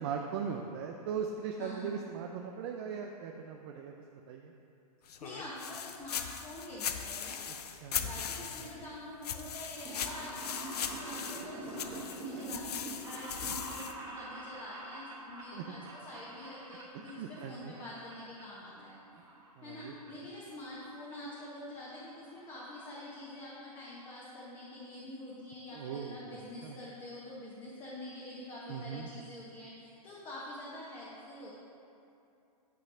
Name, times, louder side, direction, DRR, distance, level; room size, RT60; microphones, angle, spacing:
voice 1, 0.0-3.9 4.3-4.5 7.8-8.8 15.5-15.6 16.9-17.7 19.6-19.9 25.7-26.8 28.7-29.1, right 6 dB, 45° right, 2 dB, 0.5 m, -39 dB
voice 2, 1.6-1.9 5.2-7.4 8.0-19.3 19.6-31.5, left 1 dB, 25° left, -7 dB, 1.2 m, -46 dB
sound 1, 5.1-8.9 9.2-13.9, left 8 dB, 80° left, 0.6 m, -39 dB
sound 2, 9.7-17.5 17.7-18.4 18.8-19.8 20.1-20.2 21.1-21.2 21.4-21.5 21.8-21.9 22.1-22.4 22.8-22.9 23.1-23.2, right 2 dB, 20° right, 1.2 m, -45 dB
9.0 x 3.2 x 6.2 m, 2.7 s
hypercardioid pair, 135°, 20 cm